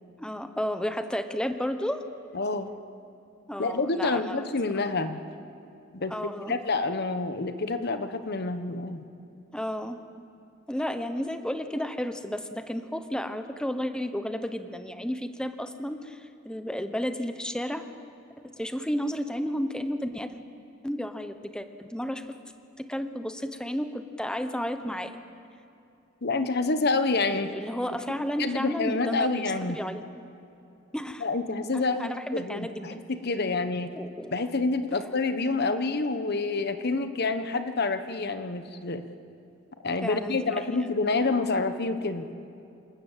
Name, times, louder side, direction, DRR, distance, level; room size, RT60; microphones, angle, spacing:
voice 1, 0.2-2.0 3.5-4.5 6.1-6.5 9.5-10.0 10.7-17.8 18.4-20.4 20.8-22.3 22.8-25.1 27.5-30.0 30.9-31.3 31.9-33.1 33.9-34.3 40.0-40.5, equal, 5° left, 8 dB, 1.0 m, -32 dB
voice 2, 2.3-2.7 3.6-5.2 5.9-9.0 26.2-27.5 28.4-29.8 31.2-33.9 34.3-39.0 39.8-42.3, left 3 dB, 55° left, 9 dB, 1.1 m, -28 dB
27.0 x 19.0 x 7.4 m, 2.6 s
head